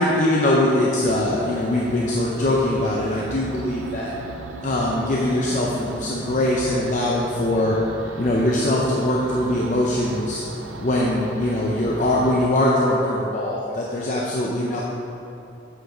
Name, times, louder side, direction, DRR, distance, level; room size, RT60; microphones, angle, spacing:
voice 1, 0.0-4.1 4.6-7.8 8.2-10.4 10.8-14.8, left 1 dB, 40° left, -4 dB, 0.6 m, -22 dB
sound 1, 1.1-12.5, right 3 dB, 85° right, 0.4 m, -37 dB
7.8 x 5.0 x 3.8 m, 2.8 s
head